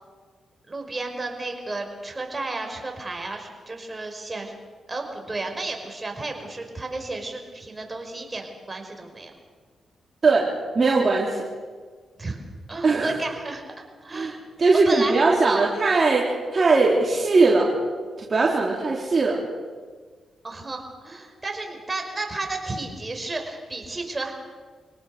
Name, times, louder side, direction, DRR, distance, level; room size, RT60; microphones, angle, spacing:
voice 1, 0.7-4.5 4.9-9.3 12.2-12.4 12.7-14.4 14.9-15.7 20.4-24.3, right 2 dB, 25° right, 3 dB, 5.5 m, -32 dB
voice 2, 10.2-11.4 12.8-13.2 14.1-14.3 14.6-17.7 18.2-19.4, right 3 dB, 45° right, -3 dB, 3.6 m, -20 dB
27.0 x 18.0 x 6.8 m, 1.5 s
cardioid pair, 60°, 0 cm